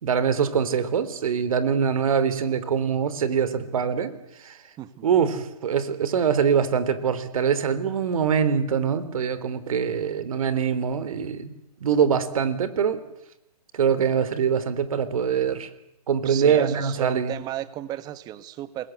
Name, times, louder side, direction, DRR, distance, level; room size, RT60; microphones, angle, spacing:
voice 1, 0.0-4.1 4.4-4.6 5.0-11.5 11.8-13.0 13.7-15.7 16.1-17.3, right 7 dB, 60° right, 14 dB, 3.6 m, -23 dB
voice 2, 4.8-5.3 16.2-18.9, right 13 dB, 20° right, 14 dB, 1.4 m, -34 dB
28.0 x 21.5 x 8.0 m, 0.83 s
hypercardioid pair, 140°, 20 cm